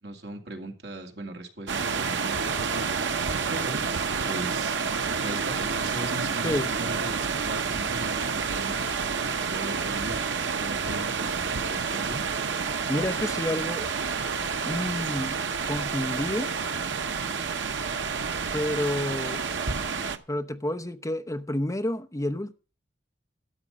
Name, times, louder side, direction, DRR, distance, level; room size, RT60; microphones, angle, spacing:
voice 1, 0.0-2.9 3.5-3.8 4.2-8.7 9.5-12.3, right 2 dB, 65° right, 2.2 m, -39 dB
sound 1, 1.7-20.2, right 5 dB, 85° right, 0.9 m, -29 dB
voice 2, 6.4-6.8 12.9-13.9 14.6-15.4 15.7-16.5 18.5-19.4 20.3-22.5, left 1 dB, 15° left, 0.8 m, -29 dB
12.5 x 8.2 x 5.4 m
head